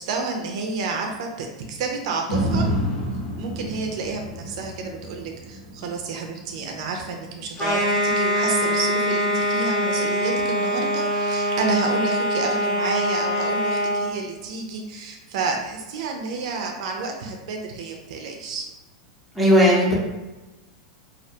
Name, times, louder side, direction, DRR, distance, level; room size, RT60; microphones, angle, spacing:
voice 1, 0.0-2.7 3.4-18.7, right 4 dB, 65° right, 2 dB, 0.4 m, -30 dB
sound 1, 2.3-10.4 10.9-11.0, equal, 75° left, 1.1 m, -31 dB
sound 2, 7.6-14.1, equal, 30° left, 0.9 m, -23 dB
voice 2, 19.3-19.9, equal, ahead, -6 dB, 0.7 m, -16 dB
2.3 x 2.1 x 2.7 m, 1.1 s
supercardioid pair, 130°, 3 cm